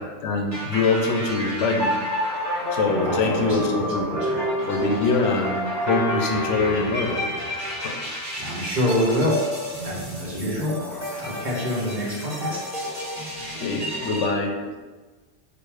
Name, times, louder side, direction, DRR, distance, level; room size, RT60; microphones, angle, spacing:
voice 1, 0.0-1.9 2.7-7.2 7.8-8.0 13.5-14.7, left 3 dB, 75° left, 2 dB, 1.0 m, -24 dB
sound 1, 0.5-14.2, equal, 15° right, 1.2 m, -29 dB
voice 2, 3.0-4.4 8.4-9.4 9.8-10.7 11.2-12.6, left 1 dB, 40° right, -4 dB, 1.3 m, -26 dB
4.6 x 2.4 x 4.8 m, 1.3 s
omnidirectional pair, 1.3 m